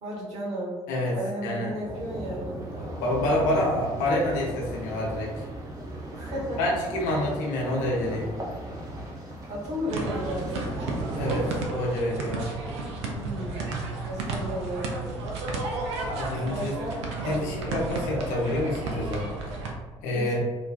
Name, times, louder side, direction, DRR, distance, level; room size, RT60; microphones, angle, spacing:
voice 1, 0.0-0.8 1.1-2.6 6.2-6.6 7.7-7.8 9.0-10.7 13.0-13.6 14.1-15.1 16.5-17.0 20.1-20.4, equal, 45° right, -5 dB, 1.0 m, -34 dB
voice 2, 1.4-1.7 2.8-5.4 6.6-8.3 11.2-12.4 16.1-16.7 17.2-19.3 20.0-20.4, left 1 dB, 60° left, -3 dB, 0.7 m, -27 dB
sound 1, 1.8-11.6, right 1 dB, 25° right, 0.6 m, -37 dB
sound 2, 9.9-19.7, right 3 dB, 70° right, 0.4 m, -32 dB
2.5 x 2.2 x 2.3 m, 1.4 s
figure-of-eight pair, 45°, 15 cm